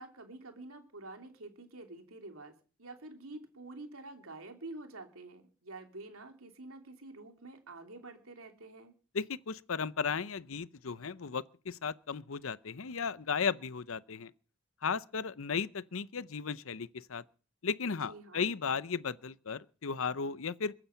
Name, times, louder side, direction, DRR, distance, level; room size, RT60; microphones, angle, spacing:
voice 1, 0.0-2.5 2.8-8.9 18.1-18.5, right 2 dB, 75° right, 2.9 m, -48 dB
voice 2, 9.1-14.3 14.8-17.2 17.6-20.7, left 5 dB, 70° left, 0.7 m, -35 dB
22.0 x 10.0 x 5.8 m
head